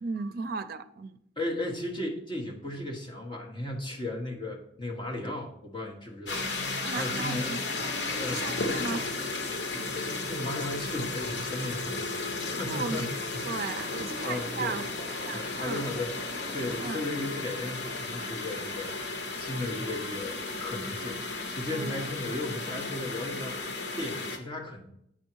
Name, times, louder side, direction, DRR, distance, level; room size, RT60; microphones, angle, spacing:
voice 1, 0.0-1.2 6.8-8.0 8.3-9.1 12.6-15.9 16.8-17.0 21.7-22.0, right 4 dB, 60° right, 0.5 m, -36 dB
voice 2, 1.4-7.6 8.1-8.4 8.7-8.9 9.7-14.7 15.2-24.9, left 1 dB, 30° left, 1.3 m, -36 dB
sound 1, 6.3-24.4, left 3 dB, 80° left, 1.0 m, -34 dB
8.8 x 5.4 x 4.6 m
head